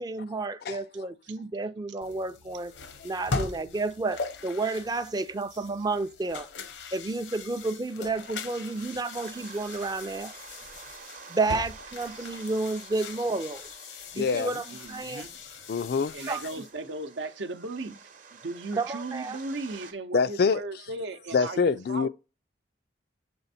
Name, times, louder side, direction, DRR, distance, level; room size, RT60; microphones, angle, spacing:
voice 1, 0.0-2.7 3.0-6.5 6.9-10.3 11.3-13.7 14.1-15.2 16.3-16.4 18.8-19.4, right 3 dB, 20° right, 0.4 m, -31 dB
sound 1, 2.0-16.7, left 4 dB, 80° left, 0.8 m, -40 dB
sound 2, 8.2-19.9, right 5 dB, 45° right, 0.8 m, -49 dB
voice 2, 14.2-14.5 15.7-16.1 20.1-20.6 21.3-22.1, left 5 dB, 55° left, 0.3 m, -25 dB
voice 3, 14.7-15.4 16.1-22.1, right 2 dB, 75° right, 0.7 m, -37 dB
7.0 x 3.4 x 4.1 m
head